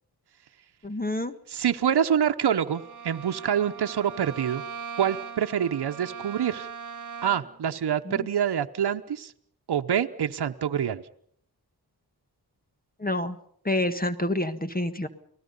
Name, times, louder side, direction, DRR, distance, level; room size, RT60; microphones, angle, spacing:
voice 1, 0.8-1.3 13.0-13.4 13.6-15.1, left 1 dB, 25° left, 10 dB, 1.5 m, -27 dB
voice 2, 1.5-4.6 5.0-6.7 7.2-9.3 9.7-11.0, right 9 dB, 80° right, 6 dB, 0.9 m, -26 dB
Bowed string instrument, 2.6-7.6, right 6 dB, 50° right, 1.6 m, -40 dB
30.0 x 20.0 x 5.4 m, 0.63 s
cardioid pair, 60°, 39 cm